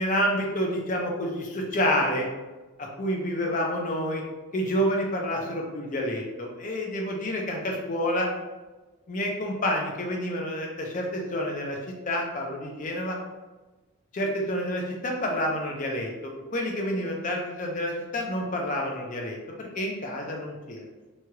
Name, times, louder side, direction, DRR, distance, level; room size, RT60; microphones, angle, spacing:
voice 1, 0.0-2.3 2.8-4.2 4.5-8.3 9.1-11.8 12.0-13.2 14.1-20.9, equal, 35° left, 0 dB, 0.5 m, -28 dB
3.0 x 2.3 x 2.8 m, 1.2 s
head